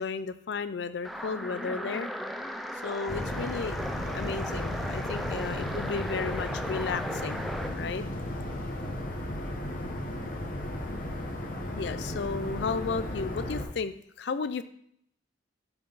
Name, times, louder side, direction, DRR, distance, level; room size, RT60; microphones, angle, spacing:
voice 1, 0.0-2.1 2.8-3.7 4.1-7.5 7.8-8.0 11.8-14.6, left 5 dB, 60° left, 13 dB, 0.4 m, -33 dB
sound 1, 1.0-7.8, equal, ahead, 0.4 m, -36 dB
sound 2, 3.1-13.7, left 1 dB, 45° left, 1.0 m, -35 dB
7.0 x 5.5 x 4.0 m, 0.69 s
head